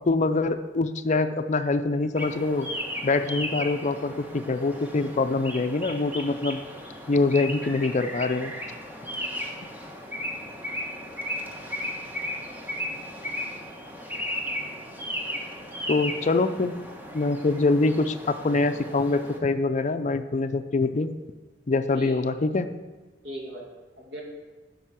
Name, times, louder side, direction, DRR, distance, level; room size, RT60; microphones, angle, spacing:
voice 1, 0.0-2.7 3.0-6.6 7.1-8.5 15.9-16.7 17.1-21.1 21.7-22.7, left 3 dB, 40° left, 10 dB, 0.5 m, -24 dB
sound 1, 2.2-19.4, equal, 10° right, 1.2 m, -35 dB
voice 2, 9.1-9.5 12.7-13.0 21.9-22.3 23.2-23.7 24.0-24.2, equal, 65° right, -1 dB, 2.5 m, -39 dB
10.0 x 5.5 x 7.5 m, 1.2 s
head